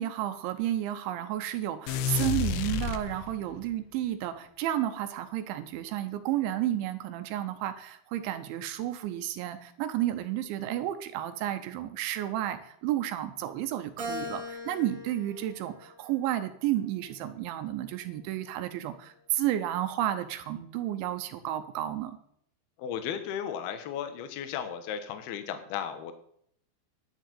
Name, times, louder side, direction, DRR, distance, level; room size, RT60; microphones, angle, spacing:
voice 1, 0.0-22.2, right 13 dB, 80° right, 9 dB, 3.1 m, -32 dB
sound 1, 1.9-3.6, left 8 dB, 85° left, 2.3 m, -30 dB
Keyboard (musical), 14.0-16.5 17.1-18.3, left 1 dB, 45° right, 2.7 m, -41 dB
voice 2, 22.8-26.1, left 8 dB, 70° left, 8 dB, 2.7 m, -35 dB
11.0 x 6.6 x 8.3 m, 0.67 s
omnidirectional pair, 5.6 m